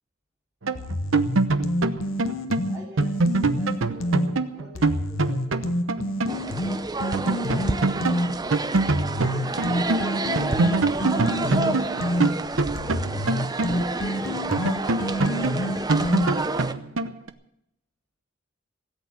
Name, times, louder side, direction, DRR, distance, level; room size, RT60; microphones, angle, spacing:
sound 1, 0.6-6.4 6.7-6.8 7.1-10.1 10.4-14.1 14.5-17.3, right 3 dB, 80° right, 0.9 m, -24 dB
sound 2, 0.8-4.3 4.8-8.3 8.8-16.6, left 1 dB, 85° left, 1.2 m, -28 dB
voice 1, 2.7-5.6 9.6-10.7 11.1-13.3 13.6-16.4, right 1 dB, 5° right, -7 dB, 3.8 m, -46 dB
sound 3, 6.3-16.7, right 2 dB, 20° right, 0.6 m, -30 dB
16.5 x 8.5 x 8.6 m, 0.79 s
head